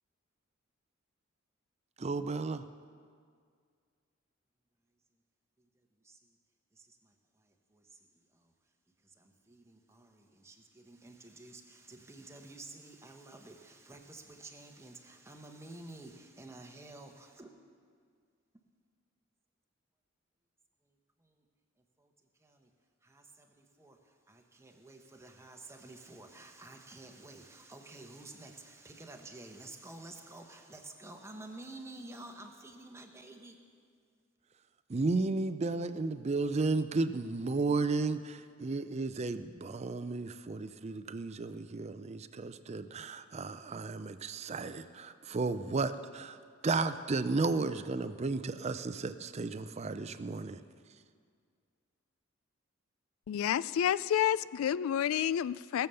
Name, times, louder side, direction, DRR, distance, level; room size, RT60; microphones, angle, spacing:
voice 1, 2.0-2.6 34.9-46.4 46.6-50.6, right 3 dB, 30° right, 12 dB, 0.5 m, -33 dB
voice 2, 5.6-6.4 6.7-8.5 9.0-17.5 20.8-21.4 22.0-22.1 22.4-22.7 23.0-33.6, right 2 dB, 15° right, 3 dB, 1.0 m, -51 dB
voice 3, 53.3-55.9, left 9 dB, 85° left, 18 dB, 0.3 m, -29 dB
19.0 x 7.0 x 6.9 m, 2.1 s
head